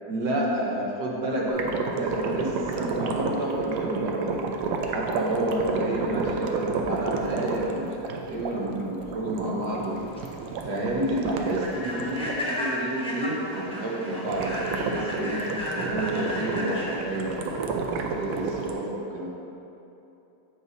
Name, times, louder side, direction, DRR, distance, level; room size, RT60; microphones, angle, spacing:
voice 1, 0.1-4.4 4.9-10.0 10.6-15.4 15.7-19.3, right 1 dB, 65° right, -3 dB, 1.5 m, -30 dB
sound 1, 1.5-12.4 14.3-18.7, right 4 dB, 85° right, 1.3 m, -31 dB
Human voice / Train, 9.9-18.7, left 1 dB, 5° left, 0.6 m, -34 dB
8.1 x 7.0 x 2.6 m, 2.9 s
omnidirectional pair, 2.1 m